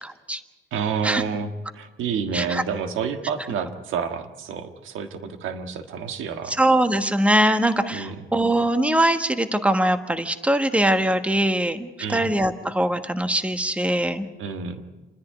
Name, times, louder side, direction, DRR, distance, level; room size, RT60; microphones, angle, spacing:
voice 1, 0.0-0.4 1.0-1.2 2.3-2.6 6.5-14.3, right 1 dB, 5° right, 9 dB, 1.3 m, -22 dB
voice 2, 0.7-6.6 7.9-8.2 12.0-12.2 14.4-14.8, right 6 dB, 85° right, 7 dB, 1.6 m, -29 dB
28.5 x 10.5 x 9.4 m, 1.1 s
cardioid pair, 90°, 20 cm